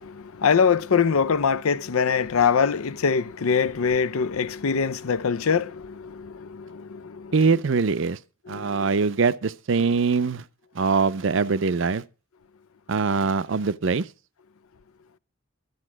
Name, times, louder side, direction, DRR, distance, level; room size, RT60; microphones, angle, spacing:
voice 1, 0.0-7.3 8.5-8.7, left 6 dB, 85° left, 0.6 m, -23 dB
voice 2, 7.3-8.2 8.5-10.4 10.7-12.0 12.9-14.1, right 4 dB, 60° right, 0.5 m, -23 dB
12.0 x 8.5 x 6.0 m
head